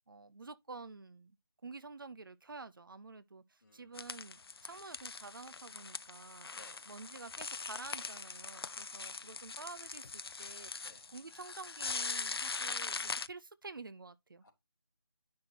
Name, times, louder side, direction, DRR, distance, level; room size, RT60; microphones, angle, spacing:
voice 1, 0.1-1.4 1.6-6.5 6.9-10.7 11.1-14.4, right 4 dB, 55° right, 0.7 m, -49 dB
voice 2, 3.6-4.0 6.5-6.8 9.2-9.4 10.8-11.1 14.4-14.5, left 2 dB, 45° left, 2.6 m, -60 dB
sound 1, 3.9-13.3, left 4 dB, 70° left, 0.5 m, -42 dB
9.6 x 6.0 x 2.8 m
figure-of-eight pair, 170°, 13 cm